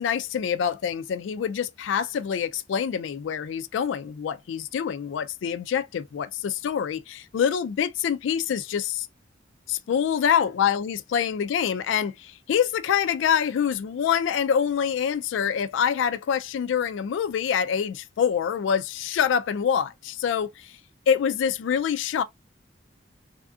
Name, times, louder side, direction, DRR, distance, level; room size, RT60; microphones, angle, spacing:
voice 1, 0.0-9.1 9.7-20.8 21.1-22.2, left 8 dB, 80° left, 0.3 m, -25 dB
3.4 x 2.5 x 2.3 m
head